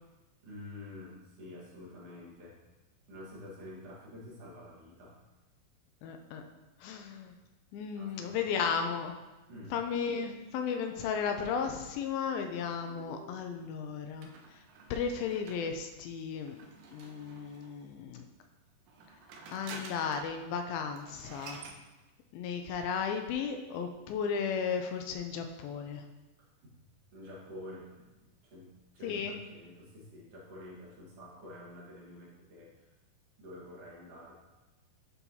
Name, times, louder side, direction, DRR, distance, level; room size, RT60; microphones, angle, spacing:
voice 1, 0.4-2.5 3.0-5.2 7.9-8.4 9.5-9.7 12.9-13.5 26.4-26.7 27.1-28.1 28.4-32.9 33.4-34.4, left 1 dB, 50° right, -5 dB, 2.1 m, -48 dB
voice 2, 6.0-6.4 6.8-7.3 7.7-9.2 9.7-14.6 14.9-16.6 16.9-18.3 19.5-21.6 22.3-26.0 29.0-29.3, left 6 dB, 80° left, 5 dB, 2.3 m, -34 dB
sound 1, 14.2-17.9 18.8-20.4 20.7-20.8 21.0-21.8, right 3 dB, 75° right, 2.2 m, -50 dB
11.0 x 4.3 x 2.7 m, 1.1 s
omnidirectional pair, 4.3 m